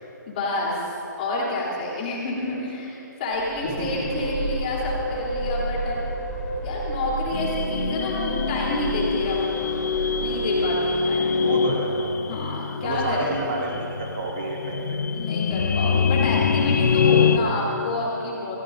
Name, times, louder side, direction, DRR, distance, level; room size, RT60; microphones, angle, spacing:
voice 1, 0.3-0.9 1.2-6.1 6.6-9.7 10.2-11.3 12.3-13.5 15.1-18.6, left 2 dB, 25° left, -4 dB, 3.4 m, -29 dB
sound 1, 3.3-11.2, right 2 dB, 5° left, 4.2 m, -31 dB
voice 2, 3.6-4.2 11.4-12.1 12.8-15.0, right 2 dB, 35° right, -2 dB, 2.5 m, -30 dB
sound 2, 7.3-17.4, left 6 dB, 55° left, 0.7 m, -24 dB
28.0 x 15.5 x 2.7 m, 2.8 s
hypercardioid pair, 170°, 10 cm